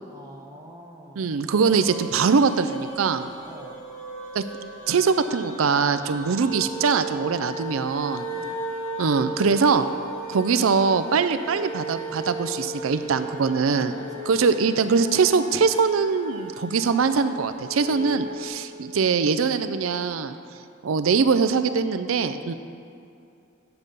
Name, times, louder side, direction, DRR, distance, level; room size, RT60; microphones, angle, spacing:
voice 1, 0.1-1.3 3.4-3.8 8.3-8.6 13.6-14.8 17.9-18.2, right 1 dB, 20° right, -1 dB, 0.8 m, -45 dB
voice 2, 1.2-3.3 4.3-4.4 4.9-8.3 9.0-9.8 10.3-13.9 14.3-20.4 20.8-22.5, right 5 dB, 85° right, 11 dB, 0.5 m, -22 dB
sound 1, 1.5-18.5, right 1 dB, 75° left, 2.4 m, -36 dB
9.5 x 6.9 x 5.3 m, 2.6 s
head